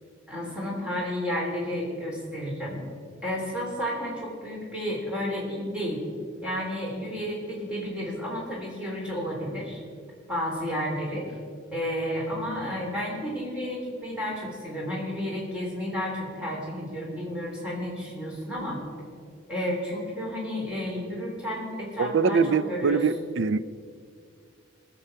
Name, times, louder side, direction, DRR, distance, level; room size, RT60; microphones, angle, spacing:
voice 1, 0.3-2.8 3.2-6.0 6.4-9.8 10.3-11.4 11.7-18.8 19.5-23.0, equal, 5° right, 3.7 m, -31 dB
voice 2, 22.0-23.7, right 5 dB, 70° right, 0.5 m, -23 dB
20.5 x 7.0 x 5.7 m
head